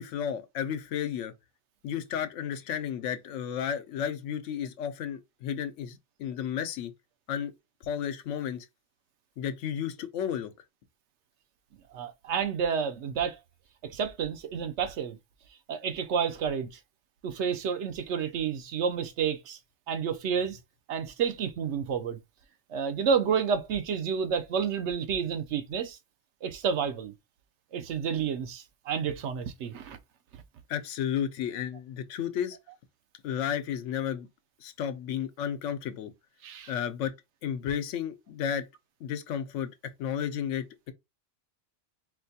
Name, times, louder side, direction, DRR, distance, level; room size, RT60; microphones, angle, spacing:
voice 1, 0.0-1.3 1.8-6.9 7.3-7.5 7.8-8.7 9.4-10.5 30.7-32.6 33.2-34.3 34.6-36.1 36.7-37.1 37.4-38.7 39.0-39.7 40.0-40.9, left 9 dB, 85° left, 0.9 m, -32 dB
voice 2, 11.9-13.4 13.8-15.2 15.7-16.8 17.2-19.6 19.9-20.6 20.9-22.2 22.7-26.0 26.4-27.1 27.7-30.0 36.4-36.7, right 7 dB, 75° right, 0.9 m, -30 dB
4.3 x 2.2 x 2.7 m
omnidirectional pair, 1.2 m